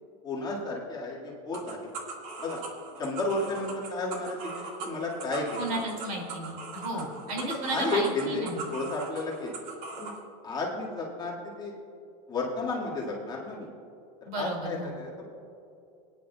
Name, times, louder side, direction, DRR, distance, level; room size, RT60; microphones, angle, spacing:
voice 1, 0.2-1.9 2.4-2.6 3.0-5.8 6.9-7.1 7.4-9.6 9.9-10.1 10.4-11.7 12.3-13.7 14.2-15.2, left 2 dB, 20° left, -4 dB, 1.9 m, -33 dB
sound 1, 1.5-10.2, right 3 dB, 65° right, 1.9 m, -40 dB
voice 2, 5.6-8.6 14.2-14.9, right 1 dB, 50° right, 0 dB, 2.6 m, -33 dB
19.5 x 9.9 x 2.3 m, 2.7 s
supercardioid pair, 150°, 19 cm